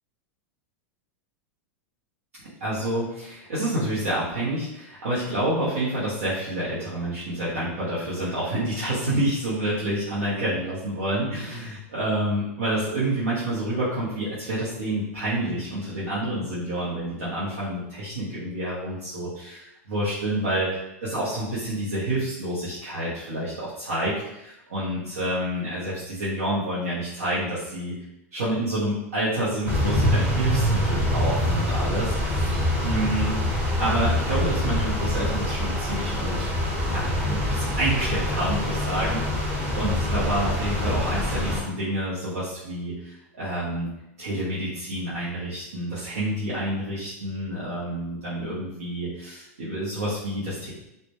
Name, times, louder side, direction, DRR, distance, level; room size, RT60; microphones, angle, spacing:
voice 1, 2.6-20.7 21.0-27.9 28.3-33.3 33.8-36.5 36.9-39.2 39.7-43.9 44.2-50.7, right 1 dB, 90° right, -10 dB, 0.7 m, -28 dB
sound 1, 29.6-41.6, left 1 dB, 20° right, 0.8 m, -25 dB
2.1 x 2.1 x 2.8 m, 0.88 s
hypercardioid pair, 120°, 8 cm